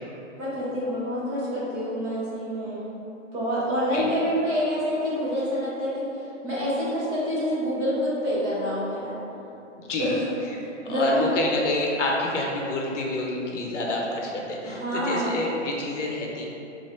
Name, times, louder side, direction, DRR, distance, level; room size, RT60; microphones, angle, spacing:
voice 1, 0.0-2.8 3.3-9.1 10.0-10.3 10.6-11.3 14.6-15.4, equal, 20° right, -10 dB, 0.6 m, -27 dB
voice 2, 9.8-10.1 10.9-16.5, left 2 dB, 70° left, -1 dB, 0.7 m, -28 dB
3.1 x 2.5 x 4.1 m, 2.9 s
hypercardioid pair, 140°, 38 cm